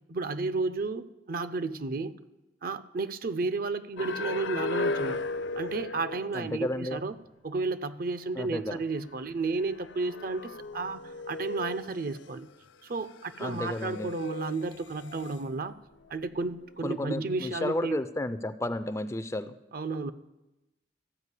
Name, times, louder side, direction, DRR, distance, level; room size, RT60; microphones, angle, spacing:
voice 1, 0.1-2.1 2.6-5.2 5.6-7.2 7.4-12.5 12.8-15.7 16.1-18.0 19.7-20.1, right 3 dB, 50° right, 13 dB, 0.5 m, -32 dB
sound 1, 4.0-6.6 6.9-7.0 8.7-8.8 9.5-12.5 13.1-15.4 16.3-16.9 17.2-17.5, left 3 dB, 80° left, 0.5 m, -36 dB
voice 2, 6.3-7.0 8.4-8.8 13.4-14.1 16.8-19.5, left 1 dB, 15° left, 13 dB, 0.4 m, -32 dB
14.0 x 5.1 x 8.1 m, 1.0 s
head